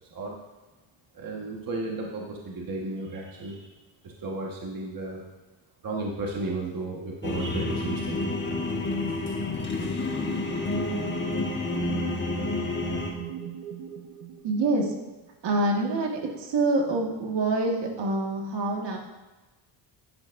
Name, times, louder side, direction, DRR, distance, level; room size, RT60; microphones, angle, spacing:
voice 1, 1.1-3.7 4.0-5.2 5.8-8.3 9.3-9.4 9.8-9.9, right 2 dB, 45° right, -1 dB, 1.5 m, -34 dB
sound 1, 7.2-13.1, left 2 dB, 25° left, 1.3 m, -29 dB
sound 2, 11.5-15.3, right 9 dB, 75° right, 1.2 m, -41 dB
voice 2, 14.4-14.9 15.4-19.0, right 2 dB, 60° right, 0 dB, 1.8 m, -26 dB
10.5 x 10.5 x 2.6 m, 1.2 s
cardioid pair, 120°, 48 cm